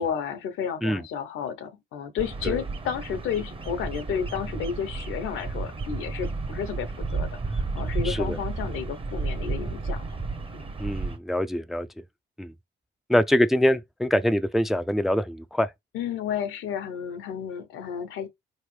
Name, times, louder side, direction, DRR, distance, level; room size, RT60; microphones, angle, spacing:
voice 1, 0.0-10.0 10.5-10.7 15.9-18.3, left 8 dB, 90° left, 0.9 m, -32 dB
Bird vocalization bird call bird song, 2.2-11.2, right 3 dB, 25° right, 0.8 m, -32 dB
voice 2, 8.0-8.4 10.8-11.9 12.4-12.5 13.1-15.7, left 1 dB, ahead, 0.3 m, -24 dB
4.1 x 3.2 x 3.2 m
cardioid pair, 90°, 20 cm